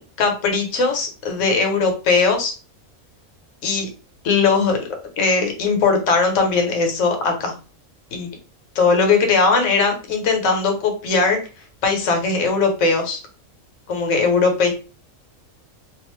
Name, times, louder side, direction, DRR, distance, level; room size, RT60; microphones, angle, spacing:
voice 1, 0.0-2.5 3.6-3.9 4.2-4.8 5.2-7.5 8.1-8.3 8.7-11.4 11.8-13.2 13.9-14.7, left 4 dB, 65° left, 3 dB, 1.1 m, -19 dB
2.5 x 2.3 x 3.0 m, 0.34 s
omnidirectional pair, 1.5 m